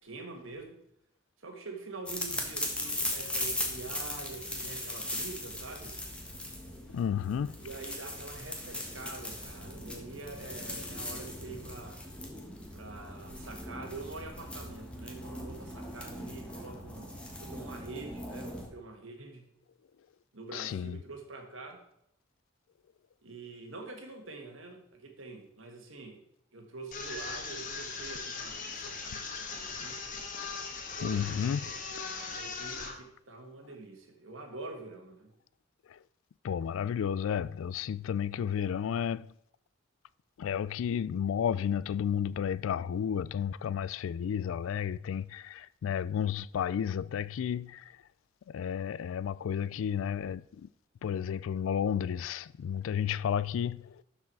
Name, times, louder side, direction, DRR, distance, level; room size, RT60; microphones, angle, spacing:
voice 1, 0.0-0.8 1.4-6.0 7.6-12.1 12.7-17.1 17.4-19.5 20.3-21.8 23.2-26.2 26.5-30.2 31.0-35.3, right 3 dB, 70° right, 1.9 m, -45 dB
sound 1, 2.1-18.7, left 1 dB, 5° left, 1.4 m, -39 dB
voice 2, 6.9-7.6 20.5-21.0 30.4-30.6 31.0-31.7 35.9-36.0 36.4-39.3 40.4-48.0 48.5-50.7 51.0-54.0, left 8 dB, 70° left, 0.3 m, -32 dB
sound 2, 26.9-32.9, left 4 dB, 40° left, 1.4 m, -39 dB
12.0 x 4.9 x 4.7 m
head